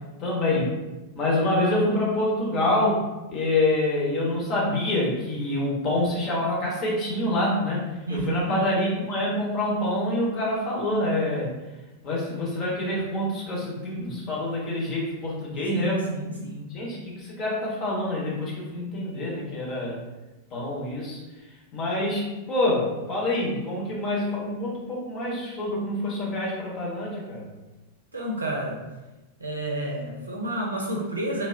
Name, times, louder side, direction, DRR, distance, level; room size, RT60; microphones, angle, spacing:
voice 1, 0.2-0.8 1.1-11.5 12.0-16.4 16.7-20.0 20.5-21.2 21.7-27.5, left 1 dB, 35° left, -4 dB, 1.0 m, -26 dB
voice 2, 8.0-8.6 15.7-16.7 28.1-28.8 29.4-31.5, right 1 dB, 80° right, -1 dB, 0.6 m, -30 dB
3.2 x 2.3 x 2.5 m, 1.1 s
figure-of-eight pair, 90°, 0 cm